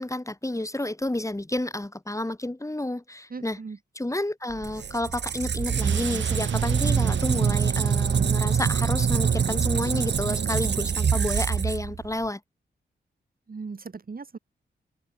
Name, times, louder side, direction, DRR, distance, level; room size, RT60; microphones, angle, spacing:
voice 1, 0.0-3.6 4.0-12.4, left 1 dB, 15° left, 4.2 m, -30 dB
voice 2, 3.3-3.8 13.5-14.4, right 4 dB, 50° right, 6.3 m, -38 dB
Squeak, 4.5-12.3, right 7 dB, 70° right, 2.1 m, -25 dB
sound 1, 5.6-8.6, right 9 dB, 85° right, 2.4 m, -42 dB
cardioid pair, 55°, 19 cm